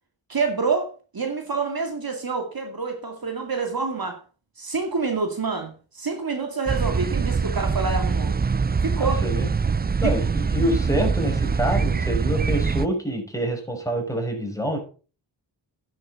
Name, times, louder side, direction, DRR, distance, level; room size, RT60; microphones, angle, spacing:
voice 1, 0.3-4.2 4.6-8.3 8.8-9.2 10.0-10.1, right 4 dB, 50° right, 2.4 m, -27 dB
sound 1, 6.7-12.9, right 5 dB, 20° right, 0.5 m, -23 dB
voice 2, 9.0-9.5 10.0-14.8, equal, 5° left, 5.5 m, -26 dB
10.0 x 8.0 x 5.7 m
cardioid pair, 50°, 46 cm